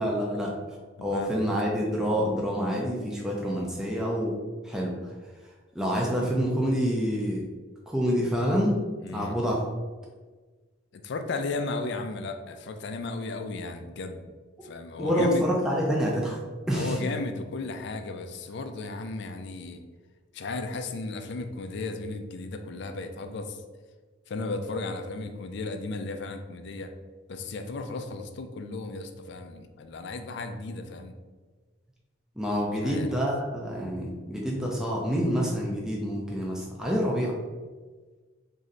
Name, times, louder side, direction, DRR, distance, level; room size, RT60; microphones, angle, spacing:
voice 1, 0.0-4.4 4.6-4.9 5.7-7.4 7.9-8.8 9.1-9.6 15.0-16.4 16.7-17.0 32.4-37.3, equal, 5° right, -3 dB, 0.4 m, -27 dB
voice 2, 1.0-1.7 9.0-9.4 10.9-14.3 14.6-15.5 16.7-19.8 20.3-23.6 24.3-26.9 27.3-31.1 32.8-33.1, left 3 dB, 60° left, 7 dB, 0.4 m, -35 dB
3.1 x 2.6 x 3.8 m, 1.4 s
head